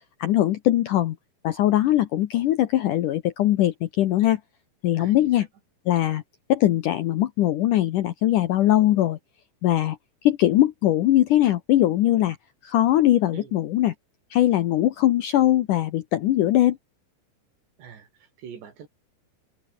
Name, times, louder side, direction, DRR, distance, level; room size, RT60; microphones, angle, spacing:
voice 1, 0.2-1.2 1.4-4.4 4.8-5.5 5.9-6.2 6.5-9.2 9.6-10.0 10.2-12.4 12.6-13.9 14.3-16.8, left 13 dB, 75° left, 1.9 m, -21 dB
voice 2, 5.0-5.5 13.3-13.6 17.8-18.9, right 7 dB, 80° right, 6.0 m, -44 dB
open air
omnidirectional pair, 4.9 m